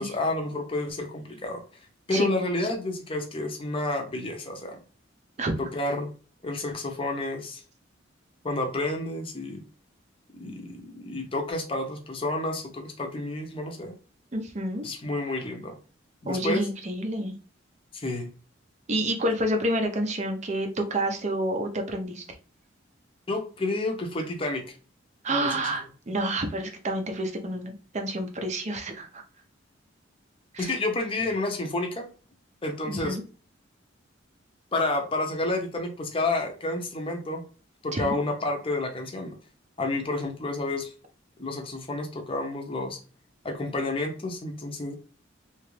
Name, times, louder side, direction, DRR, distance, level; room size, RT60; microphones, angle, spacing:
voice 1, 0.0-1.6 2.1-4.8 5.6-6.1 6.4-7.6 8.4-9.6 10.4-13.9 14.8-15.8 16.2-16.6 17.9-18.3 23.3-24.6 25.3-25.7 30.6-32.0 32.6-33.2 34.7-37.4 37.8-39.3 39.8-40.9 41.4-43.0 43.4-44.9, left 2 dB, 25° left, 3 dB, 0.6 m, -30 dB
voice 2, 14.3-14.9 16.3-17.3 18.9-22.2 25.2-29.2 30.5-30.8 32.9-33.2 37.9-38.2, right 1 dB, 35° right, 5 dB, 0.5 m, -29 dB
2.9 x 2.4 x 3.1 m, 0.38 s
head